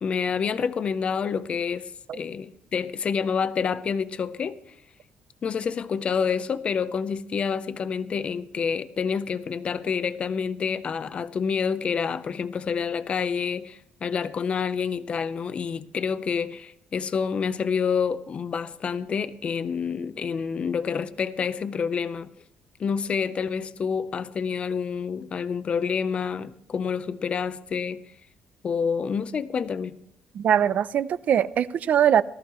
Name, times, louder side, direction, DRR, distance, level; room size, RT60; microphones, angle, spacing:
voice 1, 0.0-4.6 5.4-22.3 22.8-28.0 28.6-30.0, left 6 dB, 35° left, 0.6 m, -28 dB
voice 2, 30.3-32.2, right 9 dB, 50° right, 0.5 m, -21 dB
18.5 x 13.5 x 3.1 m
cardioid pair, 160°, 3 cm